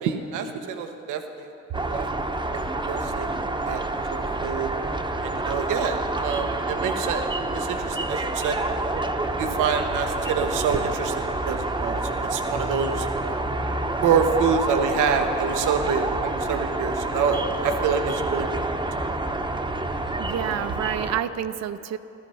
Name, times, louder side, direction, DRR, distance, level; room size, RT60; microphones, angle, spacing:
voice 1, 0.0-1.5 1.8-2.1 2.5-2.6 2.9-3.3 3.6-3.8 4.1-4.7 5.2-7.2 7.5-8.9 9.4-13.4 14.0-18.5 18.7-18.8, right 6 dB, 85° right, 6 dB, 1.0 m, -27 dB
sound 1, 1.7-21.2, right 2 dB, 15° right, 0.9 m, -28 dB
voice 2, 20.2-22.0, right 10 dB, 60° right, 13 dB, 0.6 m, -28 dB
15.5 x 13.5 x 5.5 m, 3.0 s
cardioid pair, 90°, 30 cm